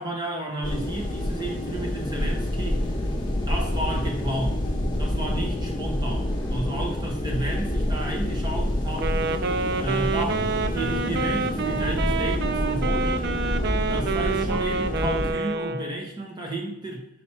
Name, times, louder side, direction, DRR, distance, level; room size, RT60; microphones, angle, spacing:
voice 1, 0.0-2.9 3.5-4.7 5.0-9.1 9.8-13.4 13.9-17.1, right 1 dB, 20° right, 0 dB, 1.5 m, -32 dB
sound 1, 0.6-15.3, left 1 dB, 20° left, 1.1 m, -27 dB
Wind instrument woodwind instrument, 8.9-16.1, right 4 dB, 50° right, 0.4 m, -28 dB
5.2 x 4.6 x 6.2 m, 0.78 s
head